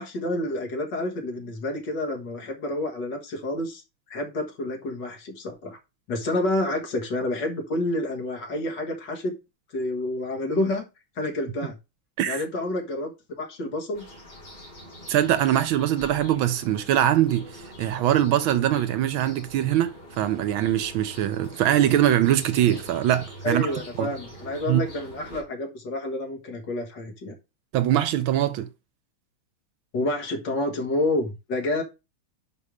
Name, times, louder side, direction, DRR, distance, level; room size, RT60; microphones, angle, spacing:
voice 1, 0.0-3.8 4.1-5.8 6.1-9.4 9.7-10.8 11.2-11.7 12.3-13.1 13.4-14.1 23.4-27.3 29.9-31.8, left 1 dB, 55° left, 2.1 m, -29 dB
sound 1, 13.9-25.4, equal, 25° left, 2.9 m, -44 dB
voice 2, 15.1-23.7 24.0-24.1 24.7-24.8 27.7-28.7, right 11 dB, 75° right, 1.4 m, -22 dB
5.4 x 5.2 x 4.8 m
omnidirectional pair, 2.4 m